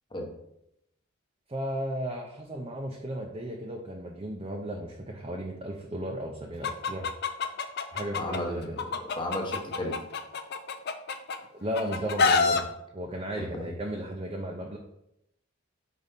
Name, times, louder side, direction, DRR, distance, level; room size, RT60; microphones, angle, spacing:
voice 1, 1.5-7.1 7.9-8.8 11.5-12.6 12.9-14.8, right 1 dB, 25° right, 0 dB, 0.6 m, -35 dB
Chicken rooster, 6.6-8.4 8.8-11.4 11.7-12.6, left 4 dB, 50° left, 0.5 m, -26 dB
voice 2, 8.2-10.0 13.4-13.5, left 1 dB, 25° left, 1 dB, 1.0 m, -34 dB
4.7 x 4.1 x 5.1 m, 0.82 s
head